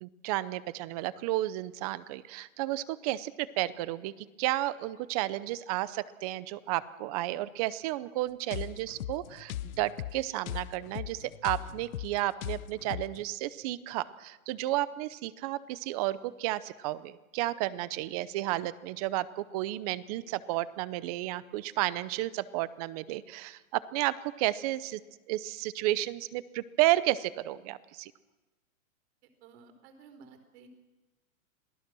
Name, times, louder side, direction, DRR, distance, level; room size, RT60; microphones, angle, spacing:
voice 1, 0.0-25.0 25.3-28.1, right 16 dB, 25° right, 17 dB, 0.7 m, -32 dB
sound 1, 8.5-13.2, left 13 dB, 75° left, 0.9 m, -39 dB
voice 2, 29.2-30.7, right 5 dB, 50° right, 6 dB, 4.1 m, -54 dB
27.0 x 18.0 x 6.2 m, 1.2 s
hypercardioid pair, 155°, 42 cm